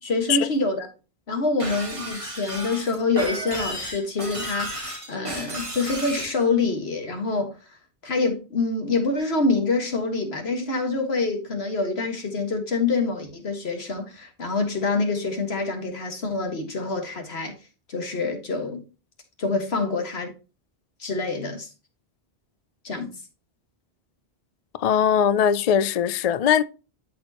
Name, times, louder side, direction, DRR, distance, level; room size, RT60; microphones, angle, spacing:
voice 1, 0.0-0.9 1.3-7.6 8.0-17.5 17.9-18.8 19.4-20.3 21.0-21.7 22.8-23.1, left 3 dB, 70° left, 1.9 m, -26 dB
Shatter, 1.6-6.4, right 1 dB, 30° right, 2.0 m, -33 dB
voice 2, 24.8-26.6, left 8 dB, 55° left, 0.4 m, -20 dB
12.0 x 4.4 x 2.9 m
omnidirectional pair, 1.1 m